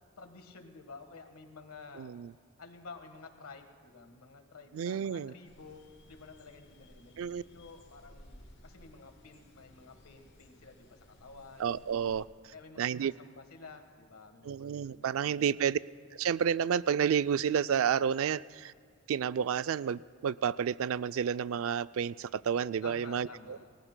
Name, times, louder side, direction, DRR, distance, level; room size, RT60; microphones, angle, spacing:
voice 1, 0.2-2.1 2.6-11.8 12.5-15.6 22.8-23.7, left 4 dB, 80° left, 6 dB, 1.4 m, -51 dB
voice 2, 2.0-2.3 4.7-5.3 7.2-7.4 11.6-12.3 12.8-13.1 14.4-15.8 16.1-18.7 19.1-23.6, right 8 dB, 65° right, 16 dB, 0.3 m, -30 dB
sound 1, 5.4-12.3, left 1 dB, 55° left, 2.7 m, -58 dB
28.5 x 19.0 x 2.2 m, 2.1 s
head